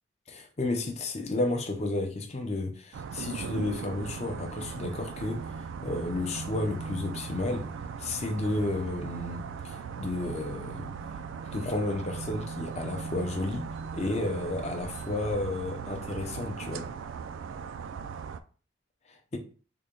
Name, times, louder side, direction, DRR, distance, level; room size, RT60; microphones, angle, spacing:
voice 1, 0.3-5.5 5.8-7.7 8.0-10.9 11.5-16.9, left 2 dB, 30° left, 0.6 m, -32 dB
sound 1, 2.9-18.4, right 6 dB, 75° right, 0.3 m, -38 dB
3.8 x 2.2 x 3.5 m
head